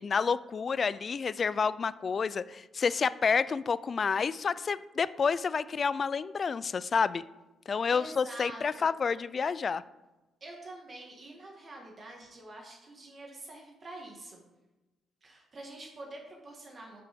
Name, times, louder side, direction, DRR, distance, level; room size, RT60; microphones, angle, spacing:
voice 1, 0.0-7.2 7.7-9.8, left 5 dB, 40° left, 17 dB, 0.3 m, -29 dB
voice 2, 7.9-8.9 10.4-14.4 15.2-17.0, right 2 dB, 40° right, -1 dB, 1.7 m, -46 dB
10.5 x 5.8 x 3.6 m, 1.1 s
cardioid pair, 90°, 0 cm